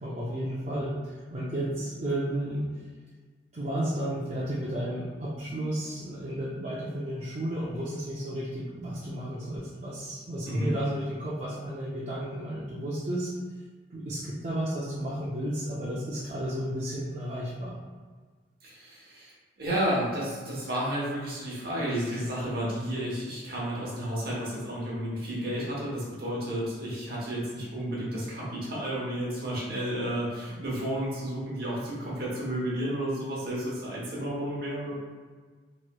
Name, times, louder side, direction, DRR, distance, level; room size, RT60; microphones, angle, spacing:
voice 1, 0.0-2.9 3.5-13.3 13.9-17.8, right 1 dB, 40° right, -8 dB, 0.5 m, -33 dB
voice 2, 18.6-35.0, right 1 dB, 55° right, -6 dB, 1.0 m, -32 dB
3.0 x 2.9 x 2.2 m, 1.5 s
head